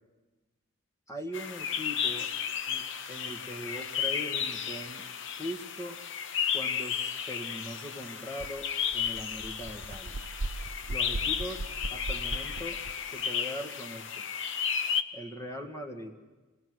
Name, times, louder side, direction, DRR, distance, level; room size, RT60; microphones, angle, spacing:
voice 1, 1.1-2.3 2.7-5.0 5.4-6.0 6.5-10.2 10.9-12.8 13.1-14.3 15.1-16.1, equal, 15° left, 4 dB, 1.8 m, -41 dB
sound 1, 1.3-15.0, left 7 dB, 60° left, 0.8 m, -33 dB
sound 2, 8.4-8.5 8.8-13.0, right 2 dB, 85° right, 0.8 m, -38 dB
26.5 x 18.5 x 6.3 m, 1.2 s
head